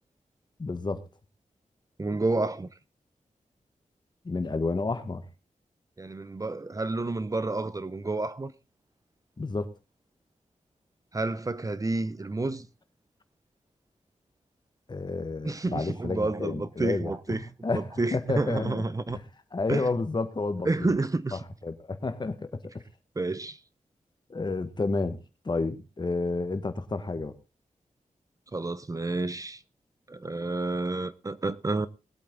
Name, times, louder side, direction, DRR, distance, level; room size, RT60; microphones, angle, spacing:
voice 1, 0.6-1.0 4.2-5.2 9.4-9.7 14.9-18.8 19.1-19.3 19.5-20.9 21.3-22.6 24.3-25.2 25.4-27.3, left 3 dB, 35° left, 1.5 m, -30 dB
voice 2, 2.0-2.7 6.0-8.5 11.1-12.7 15.4-17.4 17.7-19.2 19.7-19.8 20.6-21.4 23.2-23.6 28.5-29.6 30.1-31.9, right 2 dB, 25° right, 0.7 m, -30 dB
20.5 x 8.4 x 3.8 m
wide cardioid pair, 140°, 13 cm